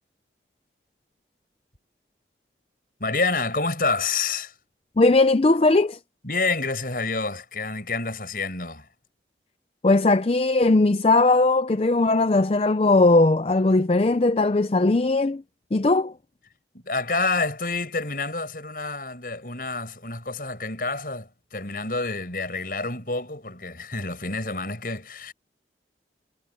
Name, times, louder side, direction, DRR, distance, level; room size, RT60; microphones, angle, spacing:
voice 1, 3.0-4.5 6.2-8.9 16.7-25.3, left 3 dB, 55° left, 7.3 m, -28 dB
voice 2, 5.0-6.0 9.8-15.4 15.7-16.1, left 2 dB, 35° left, 0.5 m, -19 dB
head